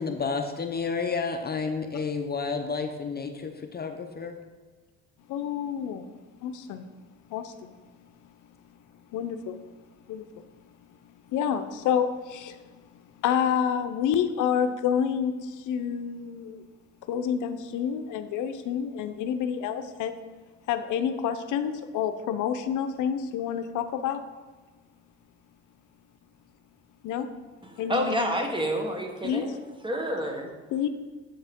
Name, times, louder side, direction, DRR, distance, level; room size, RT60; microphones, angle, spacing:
voice 1, 0.0-4.4, left 5 dB, 30° left, 5 dB, 0.6 m, -31 dB
voice 2, 5.3-6.1 6.4-6.9 7.3-7.7 9.1-9.6 10.1-10.2 11.3-12.6 13.2-16.6 17.1-20.1 20.7-24.2 27.0-27.3 27.8-28.2 29.2-29.4 30.7-30.9, left 8 dB, 85° left, 9 dB, 0.5 m, -28 dB
voice 3, 27.6-29.6 29.8-30.5, equal, 15° right, 3 dB, 1.1 m, -29 dB
7.9 x 5.5 x 3.5 m, 1.3 s
cardioid pair, 90°, 30 cm